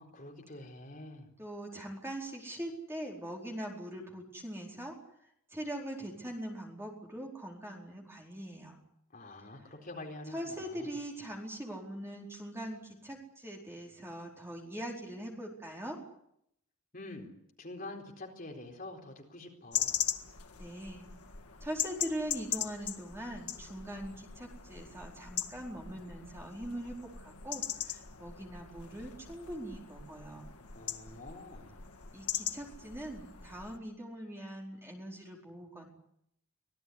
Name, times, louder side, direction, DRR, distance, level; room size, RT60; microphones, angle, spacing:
voice 1, 0.0-1.3 9.1-10.9 16.9-17.3 17.6-20.0 30.7-31.8, left 2 dB, 40° left, 1 dB, 4.3 m, -46 dB
voice 2, 1.4-4.9 5.5-8.8 10.3-16.0 20.6-21.1 21.6-30.5 32.1-35.9, right 1 dB, 10° right, 0 dB, 4.5 m, -42 dB
sound 1, 19.7-33.8, left 9 dB, 90° left, 1.8 m, -40 dB
25.5 x 17.5 x 9.9 m, 0.75 s
head